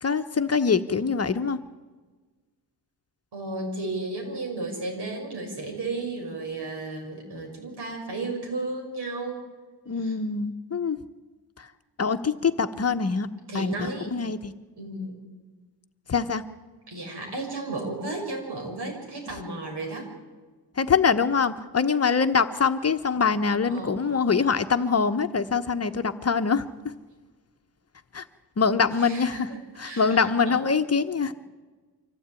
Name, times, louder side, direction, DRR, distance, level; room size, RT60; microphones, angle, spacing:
voice 1, 0.0-1.6 9.9-11.0 11.6-11.7 12.0-13.3 13.5-14.5 16.1-16.4 20.8-26.9 28.1-28.2 28.6-29.5 29.8-31.3, left 5 dB, 35° left, 8 dB, 1.0 m, -24 dB
voice 2, 3.3-9.4 10.0-10.1 13.5-14.1 14.8-15.2 16.9-20.1 23.7-24.0 29.0-30.6, right 2 dB, 70° right, 2 dB, 6.5 m, -34 dB
25.0 x 16.0 x 9.0 m, 1.4 s
wide cardioid pair, 120°, 42 cm